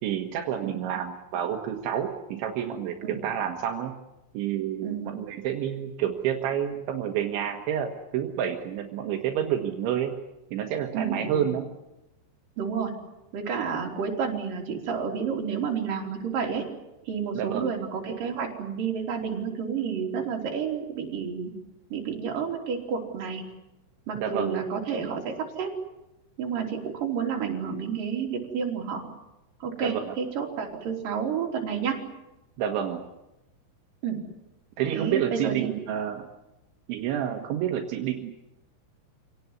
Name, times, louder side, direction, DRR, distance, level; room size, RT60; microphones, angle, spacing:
voice 1, 0.0-3.0 3.2-3.9 4.3-10.2 10.5-11.7 17.4-17.7 24.2-24.6 29.8-30.2 32.6-33.1 34.8-36.3 36.9-38.3, right 9 dB, 75° right, 2 dB, 3.8 m, -29 dB
voice 2, 4.8-5.1 10.9-11.5 12.6-12.9 13.3-16.7 17.0-21.5 21.9-23.5 24.1-25.7 26.4-29.1 29.6-32.0 34.0-34.2 34.9-35.7, right 6 dB, 45° right, 0 dB, 4.9 m, -30 dB
27.0 x 18.0 x 9.7 m, 0.96 s
omnidirectional pair, 5.5 m